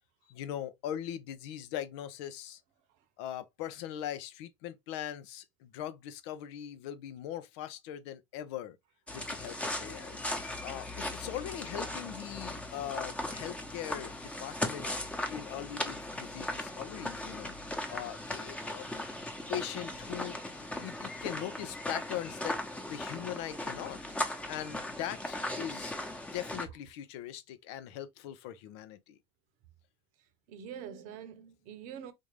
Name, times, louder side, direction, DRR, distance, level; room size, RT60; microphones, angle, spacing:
voice 1, 0.3-2.6 3.2-8.8 9.1-10.2 10.6-14.1 14.4-14.9 15.3-17.5 17.9-18.9 19.5-24.0 24.5-26.0 26.3-29.2, left 11 dB, 75° left, 0.6 m, -40 dB
sound 1, 9.1-26.6, left 1 dB, 10° left, 0.9 m, -38 dB
voice 2, 30.2-32.1, right 8 dB, 65° right, 0.8 m, -46 dB
3.6 x 2.6 x 3.2 m
supercardioid pair, 90°, 14 cm